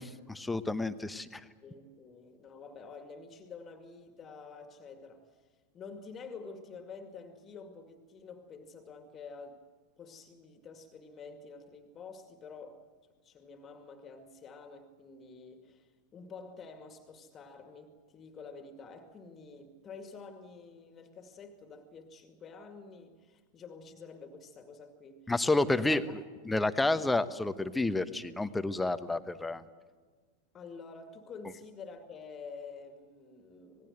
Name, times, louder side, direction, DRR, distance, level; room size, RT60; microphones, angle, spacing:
voice 1, 0.0-1.4 25.3-29.6, left 2 dB, 5° left, 1.1 m, -30 dB
voice 2, 1.6-5.5 5.7-9.6 10.0-12.8 13.2-26.1 30.5-33.9, left 4 dB, 25° left, 2.2 m, -49 dB
26.5 x 20.0 x 7.9 m
figure-of-eight pair, 90°, 0 cm